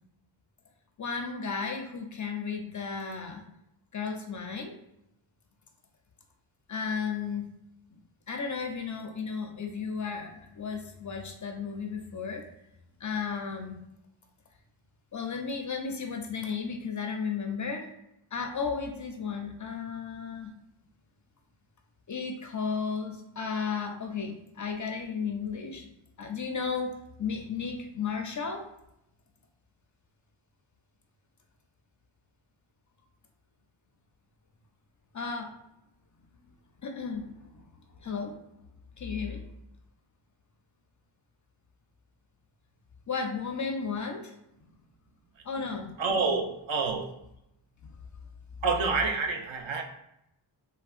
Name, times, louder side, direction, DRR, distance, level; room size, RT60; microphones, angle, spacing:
voice 1, 1.0-3.4 3.9-4.8 6.7-7.5 7.9-8.0 8.3-12.4 13.0-13.8 15.1-17.9 18.3-20.5 22.1-25.9 26.2-28.6 35.1-35.5 36.8-37.6 38.0-38.4 39.0-39.4 43.1-44.3 45.4-45.9, left 5 dB, 40° left, 3 dB, 0.4 m, -34 dB
voice 2, 46.0-47.1 48.6-49.8, right 4 dB, 65° right, 4 dB, 0.6 m, -28 dB
3.5 x 2.2 x 2.4 m, 0.82 s
wide cardioid pair, 85°, 50 cm